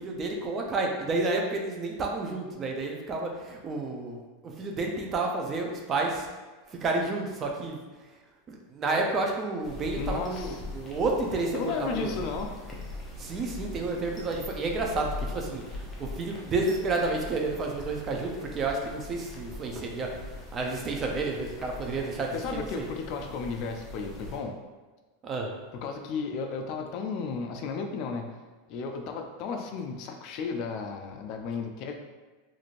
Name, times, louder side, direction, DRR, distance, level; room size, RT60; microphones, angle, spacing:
voice 1, 0.0-6.3 6.7-8.2 8.5-12.1 13.2-22.9 25.2-25.5, right 3 dB, 30° right, 1 dB, 0.4 m, -31 dB
sound 1, 9.6-24.4, left 2 dB, 15° left, 0.7 m, -41 dB
voice 2, 10.0-10.6 11.5-12.5 22.3-24.6 25.8-28.3 28.7-31.9, left 5 dB, 50° left, 4 dB, 0.3 m, -34 dB
3.0 x 2.5 x 2.5 m, 1.3 s
supercardioid pair, 125°, 0 cm